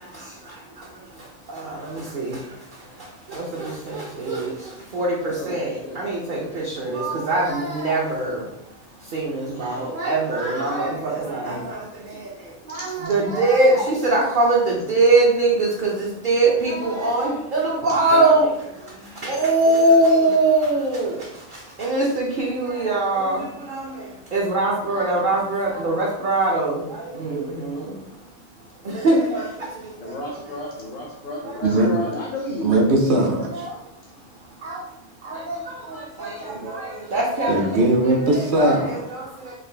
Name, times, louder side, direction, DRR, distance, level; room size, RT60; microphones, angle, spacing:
voice 1, 1.5-2.4 3.3-4.5 4.9-8.4 9.1-12.3 12.7-18.5 19.2-21.2 21.8-24.0 24.3-28.0 28.8-29.5 30.1-30.2 33.5-33.7 34.6-34.8 35.2-37.8 38.3-39.5, right 2 dB, 55° right, -4 dB, 0.7 m, -22 dB
voice 2, 5.4-6.0 9.5-9.9 11.4-11.7 12.7-13.0 16.9-17.3 17.9-18.4 27.2-27.4 30.0-32.8 36.4-36.7, equal, 55° left, -1 dB, 0.8 m, -32 dB
voice 3, 32.6-33.7 37.5-39.0, right 1 dB, 75° right, 1 dB, 1.0 m, -19 dB
3.8 x 2.5 x 3.2 m, 0.85 s
omnidirectional pair, 1.2 m